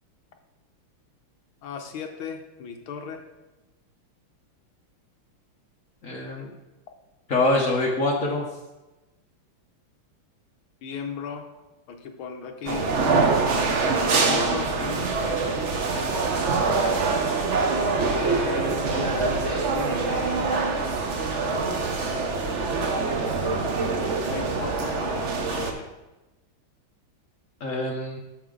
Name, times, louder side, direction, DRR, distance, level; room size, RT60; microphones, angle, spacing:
voice 1, 1.6-3.2 10.8-11.5 11.9-12.9 14.1-15.5 15.9-17.0 18.0-20.5 24.2-25.9, left 6 dB, 75° left, 4 dB, 1.7 m, -36 dB
voice 2, 6.0-6.5 7.3-8.4 27.6-28.2, left 2 dB, 50° left, -1 dB, 1.1 m, -24 dB
sound 1, 12.7-25.7, right 4 dB, 60° right, 0.7 m, -24 dB
8.6 x 7.0 x 3.8 m, 1.0 s
omnidirectional pair, 2.4 m